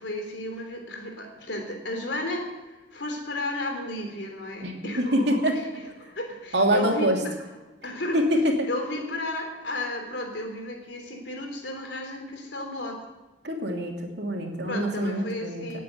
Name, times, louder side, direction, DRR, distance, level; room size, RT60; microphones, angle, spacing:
voice 1, 0.0-5.6 6.0-7.5 7.8-8.2 8.7-13.0 14.7-15.8, left 1 dB, 75° left, 3 dB, 3.6 m, -33 dB
voice 2, 4.6-5.6 6.5-7.2 8.1-8.7 13.4-15.8, equal, 65° right, 1 dB, 2.8 m, -25 dB
19.0 x 8.4 x 8.0 m, 1.1 s
head